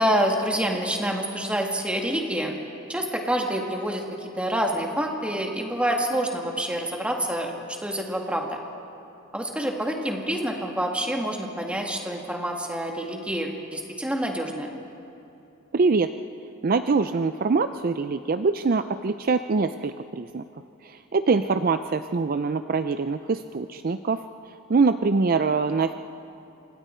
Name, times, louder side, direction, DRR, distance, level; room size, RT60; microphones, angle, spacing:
voice 1, 0.0-2.5 2.9-7.5 7.8-8.6 9.3-14.7, right 1 dB, 5° right, 1 dB, 1.8 m, -27 dB
voice 2, 15.7-16.1 16.6-20.4 20.8-24.2 24.7-25.9, right 4 dB, 40° right, 10 dB, 0.4 m, -24 dB
26.5 x 26.0 x 4.4 m, 2.9 s
head